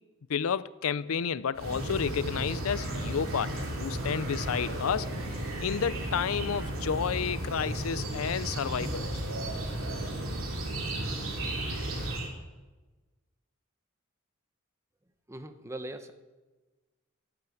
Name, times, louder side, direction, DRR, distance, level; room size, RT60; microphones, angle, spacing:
voice 1, 0.3-5.1 5.6-9.1, left 7 dB, 85° left, 0.5 m, -31 dB
sound 1, 1.5-12.3, right 1 dB, 70° right, 3.3 m, -34 dB
voice 2, 15.3-16.1, right 1 dB, 15° right, 1.0 m, -40 dB
15.5 x 8.8 x 7.9 m
head